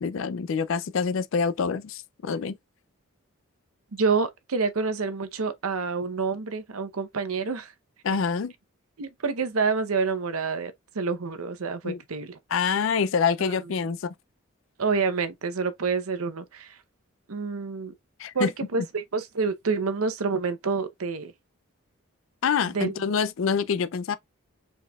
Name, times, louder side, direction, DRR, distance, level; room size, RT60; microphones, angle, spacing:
voice 1, 0.0-2.6 8.0-8.5 11.8-12.0 12.5-14.1 18.2-18.5 22.4-24.2, left 6 dB, 65° left, 0.4 m, -26 dB
voice 2, 3.9-7.7 9.0-12.4 13.4-13.6 14.8-16.8 17.3-17.9 18.3-21.3 22.7-22.9, right 4 dB, 85° right, 0.8 m, -28 dB
5.3 x 4.1 x 2.3 m
head